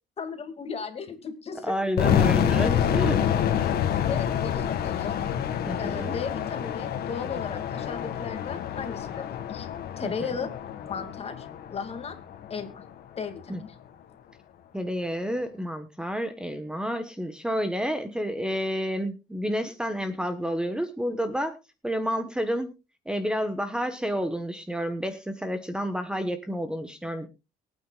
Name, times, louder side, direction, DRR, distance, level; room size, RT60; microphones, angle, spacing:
voice 1, 0.2-2.1 2.5-2.6 3.8-5.2 5.8-9.7 10.0-10.5 10.8-12.2 12.5-12.8 13.2-13.7, left 6 dB, 35° left, 7 dB, 2.4 m, -36 dB
voice 2, 1.6-3.2 5.6-6.1 10.0-10.3 13.5-13.6 14.7-21.6 21.8-22.7 23.1-27.3, equal, 5° right, 9 dB, 1.2 m, -30 dB
sound 1, 2.0-12.8, left 9 dB, 65° left, 2.0 m, -27 dB
23.5 x 9.1 x 2.4 m, 0.28 s
cardioid pair, 110°, 17 cm